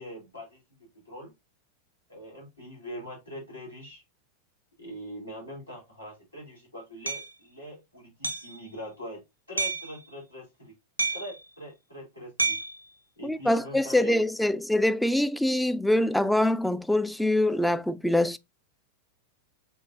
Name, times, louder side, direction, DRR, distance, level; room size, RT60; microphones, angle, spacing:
voice 1, 0.0-1.3 2.1-4.0 4.8-9.2 9.5-10.7 11.1-12.6 13.2-14.7, equal, 85° left, 3.3 m, -43 dB
Hammer, 7.1-7.3 8.2-8.6 9.6-9.9 11.0-11.4 12.4-12.8, right 3 dB, 85° right, 0.7 m, -29 dB
voice 2, 13.2-18.4, left 1 dB, 5° left, 0.3 m, -24 dB
5.5 x 3.6 x 2.6 m
figure-of-eight pair, 90°, 0 cm